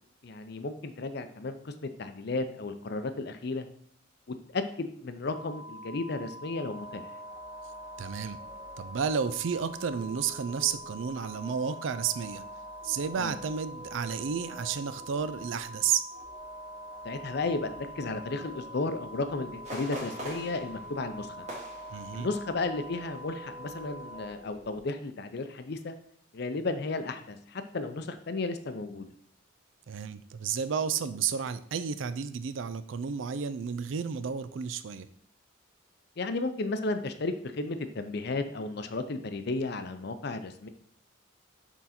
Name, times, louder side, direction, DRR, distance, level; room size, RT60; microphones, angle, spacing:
voice 1, 0.2-3.7 4.3-7.1 13.2-13.3 17.0-21.5 22.1-25.9 26.3-29.1 36.2-40.7, left 3 dB, 55° left, 9 dB, 0.5 m, -34 dB
sound 1, 5.2-24.3, equal, 90° left, 1.0 m, -45 dB
sound 2, 6.5-24.8, equal, 30° left, 0.9 m, -49 dB
voice 2, 8.0-8.4 8.8-12.5 12.8-16.0 21.9-22.3 29.9-35.1, right 7 dB, 75° right, 13 dB, 0.4 m, -32 dB
sound 3, 19.6-22.7 23.0-23.3 23.7-24.1 24.5-24.6, equal, 35° right, 1.7 m, -43 dB
6.2 x 3.9 x 4.3 m, 0.63 s
head